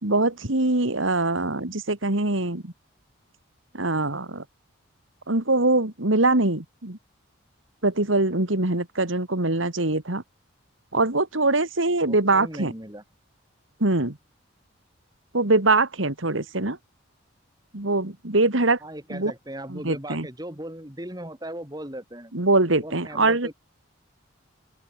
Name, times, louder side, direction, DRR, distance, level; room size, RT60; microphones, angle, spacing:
voice 1, 0.0-2.7 3.7-4.4 5.3-7.0 7.8-10.2 10.9-12.7 13.8-14.2 15.3-16.8 17.7-18.8 19.1-19.3 19.7-20.3 22.3-23.5, right 2 dB, 75° right, 2.7 m, -23 dB
voice 2, 12.0-13.0 16.3-16.5 18.8-22.3 22.8-23.5, right 1 dB, 20° right, 3.9 m, -38 dB
open air
head